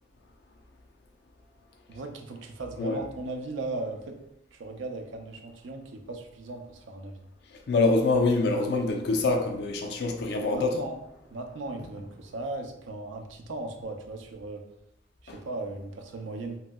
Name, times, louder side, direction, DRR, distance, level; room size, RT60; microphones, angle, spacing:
voice 1, 1.9-4.2 4.5-7.2 10.5-11.0 11.3-14.6 15.2-16.6, right 2 dB, 90° right, 0.4 m, -37 dB
voice 2, 7.7-10.8 15.3-15.4, left 3 dB, 60° left, 0.4 m, -25 dB
3.0 x 2.7 x 2.2 m
head